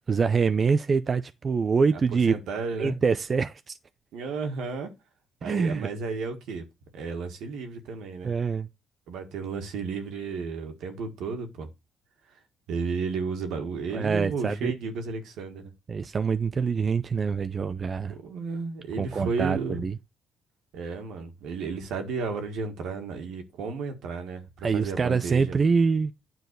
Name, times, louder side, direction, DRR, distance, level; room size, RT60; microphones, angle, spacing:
voice 1, 0.1-2.4 2.8-3.7 5.4-5.9 8.2-8.7 13.9-14.8 15.9-18.1 19.0-19.9 24.6-26.1, right 5 dB, 40° right, 0.5 m, -25 dB
voice 2, 1.9-3.0 4.1-4.9 5.4-6.6 6.9-8.3 9.1-11.7 12.3-12.4 12.7-15.7 18.1-19.8 20.7-25.6, right 4 dB, 85° right, 1.7 m, -33 dB
9.3 x 4.1 x 6.6 m
cardioid pair, 90°, 0 cm